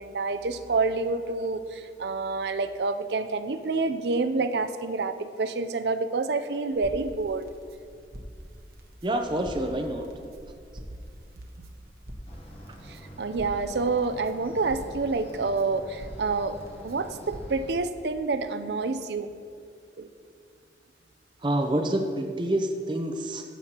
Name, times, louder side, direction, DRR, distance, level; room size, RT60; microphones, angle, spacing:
voice 1, 0.0-7.5 12.9-16.6 16.8-19.3 20.0-20.1, right 3 dB, 75° right, 10 dB, 0.5 m, -28 dB
Crackle, 6.7-17.6, equal, 60° right, 1.1 m, -45 dB
voice 2, 9.0-10.1 21.4-23.4, right 1 dB, 25° right, 4 dB, 0.6 m, -27 dB
sound 1, 12.3-17.7, right 1 dB, 35° left, 1.0 m, -47 dB
15.0 x 8.3 x 2.9 m, 2.3 s
head